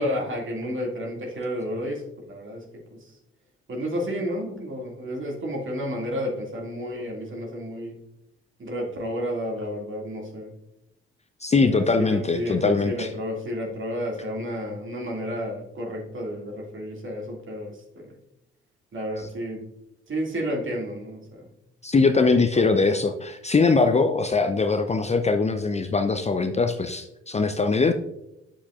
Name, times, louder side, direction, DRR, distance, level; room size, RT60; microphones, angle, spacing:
voice 1, 0.0-2.0 2.3-2.6 2.9-3.0 3.7-8.0 8.6-10.5 11.6-18.1 18.9-19.6 20.1-21.5 22.4-22.6, equal, 40° right, 0 dB, 2.2 m, -31 dB
voice 2, 11.4-13.1 21.8-27.9, left 4 dB, 20° left, 8 dB, 0.6 m, -22 dB
8.8 x 7.1 x 2.4 m, 0.87 s
figure-of-eight pair, 40°, 30 cm